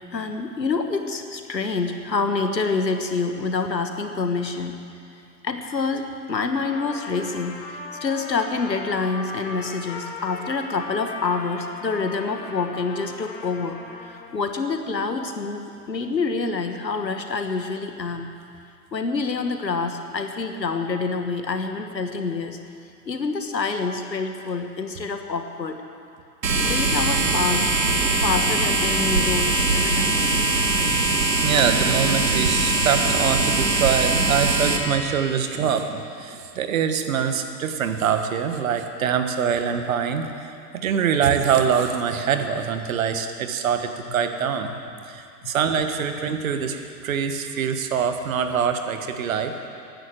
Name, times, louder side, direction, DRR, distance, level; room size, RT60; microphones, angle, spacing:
voice 1, 0.1-4.8 5.4-18.3 18.9-22.6 23.1-25.8 26.7-27.7 28.2-30.3 44.7-44.8 45.4-45.5, left 4 dB, 85° left, 6 dB, 1.5 m, -27 dB
Trumpet, 6.6-14.5, left 2 dB, 15° left, 1.7 m, -38 dB
sound 1, 26.4-34.8, right 2 dB, 80° right, 1.9 m, -21 dB
voice 2, 31.4-40.3 40.7-44.7 45.1-49.5, right 7 dB, 55° right, 7 dB, 1.4 m, -24 dB
14.0 x 10.5 x 7.7 m, 2.5 s
figure-of-eight pair, 110°, 49 cm